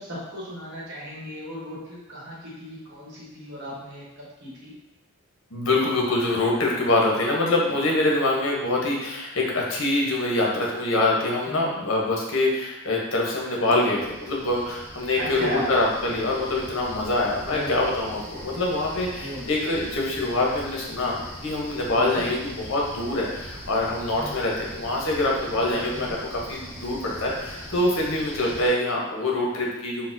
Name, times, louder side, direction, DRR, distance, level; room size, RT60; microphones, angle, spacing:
voice 1, 0.0-4.7 11.5-11.7 15.2-15.7 17.4-17.7 19.2-19.5 21.9-22.3 24.2-24.3 25.9-26.1, equal, 55° right, -6 dB, 1.0 m, -35 dB
voice 2, 5.5-30.1, left 2 dB, 65° left, -2 dB, 0.7 m, -25 dB
sound 1, 14.0-28.7, equal, 10° right, 0.5 m, -41 dB
3.9 x 2.0 x 2.5 m, 0.97 s
head